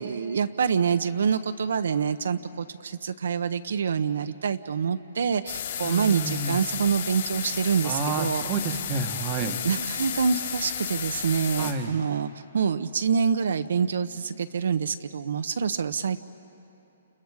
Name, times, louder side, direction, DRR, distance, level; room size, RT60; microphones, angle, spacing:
voice 1, 0.0-8.4 9.6-16.2, right 6 dB, 70° right, 10 dB, 0.7 m, -26 dB
sound 1, 5.5-11.7, left 9 dB, 55° left, 3.5 m, -33 dB
voice 2, 5.8-6.6 7.8-9.6 11.6-11.9, right 4 dB, 25° right, 7 dB, 1.1 m, -30 dB
30.0 x 29.0 x 4.8 m, 2.9 s
hypercardioid pair, 165°, 0 cm